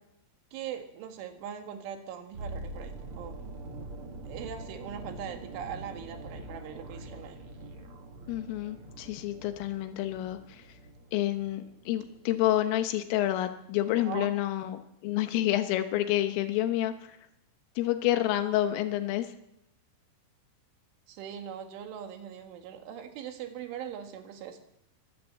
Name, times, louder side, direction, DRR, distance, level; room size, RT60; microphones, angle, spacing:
voice 1, 0.5-3.4 4.2-7.4 14.0-14.4 21.1-24.6, right 9 dB, 75° right, 6 dB, 4.3 m, -41 dB
sound 1, 2.3-12.3 12.6-12.8, right 2 dB, 60° right, 1.4 m, -44 dB
voice 2, 8.3-10.7 11.1-17.2 17.8-19.3, left 13 dB, 90° left, 8 dB, 3.8 m, -29 dB
24.5 x 15.0 x 7.4 m, 0.84 s
omnidirectional pair, 5.7 m